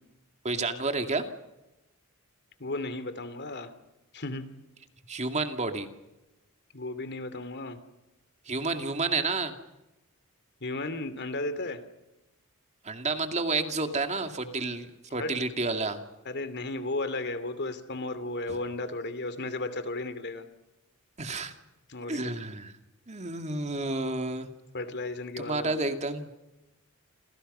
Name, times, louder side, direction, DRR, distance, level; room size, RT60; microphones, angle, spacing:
voice 1, 0.4-1.3 5.1-5.9 8.5-9.5 12.8-16.0 21.2-21.5 22.1-22.7 23.1-24.5 25.4-26.3, right 3 dB, 30° right, 6 dB, 2.4 m, -30 dB
voice 2, 2.6-3.7 4.1-4.5 6.7-7.8 10.6-11.8 15.2-15.3 16.2-20.5 21.9-22.4 24.7-25.7, left 2 dB, 50° left, 12 dB, 2.7 m, -34 dB
29.0 x 28.5 x 5.6 m, 0.98 s
head